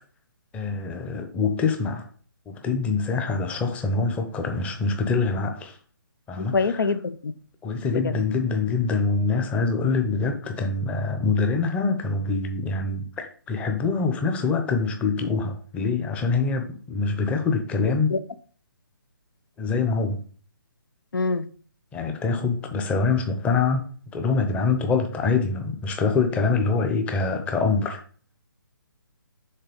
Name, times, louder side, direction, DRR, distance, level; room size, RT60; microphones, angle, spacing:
voice 1, 0.5-2.1 2.5-5.8 6.3-6.8 7.6-18.2 19.6-20.2 21.9-28.0, left 4 dB, 10° left, 0.8 m, -25 dB
voice 2, 6.4-7.3 7.9-8.2 18.1-18.2 21.1-21.5, left 4 dB, 70° left, 0.7 m, -25 dB
6.7 x 4.0 x 5.2 m
figure-of-eight pair, 145°, 11 cm